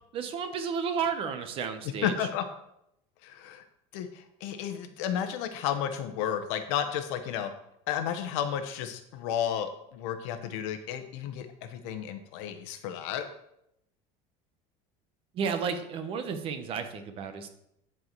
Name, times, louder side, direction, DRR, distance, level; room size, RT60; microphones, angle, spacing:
voice 1, 0.1-2.1 15.3-17.5, right 6 dB, 40° right, 8 dB, 1.0 m, -32 dB
voice 2, 2.0-2.4 3.2-3.6 3.9-7.5 7.9-13.3, left 9 dB, 85° left, 7 dB, 1.0 m, -32 dB
10.0 x 4.7 x 4.6 m, 0.79 s
cardioid pair, 160°, 15 cm